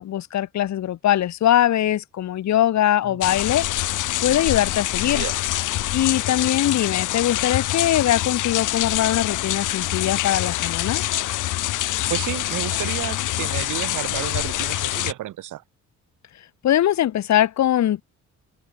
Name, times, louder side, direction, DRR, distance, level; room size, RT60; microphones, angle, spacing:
voice 1, 0.0-3.7 4.2-5.2 5.9-11.0 16.6-18.0, left 12 dB, 65° left, 1.7 m, -21 dB
sound 1, 3.2-15.1, left 15 dB, 85° left, 5.0 m, -25 dB
voice 2, 5.0-5.4 12.1-15.6, right 13 dB, 80° right, 7.9 m, -31 dB
cardioid pair, 90°, 30 cm